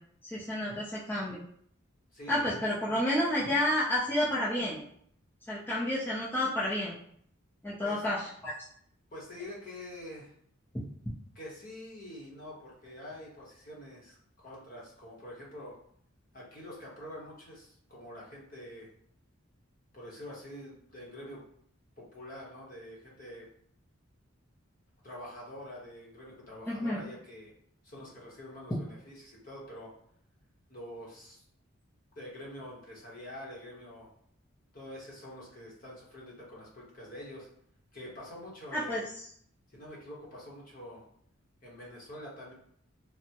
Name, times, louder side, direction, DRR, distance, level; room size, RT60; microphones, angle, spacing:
voice 1, 0.2-1.4 2.3-4.8 5.5-6.9 7.6-8.5 26.7-27.0 38.7-39.0, left 1 dB, 10° left, -9 dB, 0.4 m, -30 dB
voice 2, 2.1-2.5 7.8-8.0 9.1-10.3 11.3-15.8 16.3-18.9 19.9-21.4 22.0-23.5 25.0-27.5 27.8-29.9 30.7-31.4 32.1-34.1 34.7-37.5 37.9-39.0 39.7-41.0 41.6-42.5, left 1 dB, 40° left, -4 dB, 0.9 m, -46 dB
3.4 x 2.0 x 2.8 m, 0.65 s
head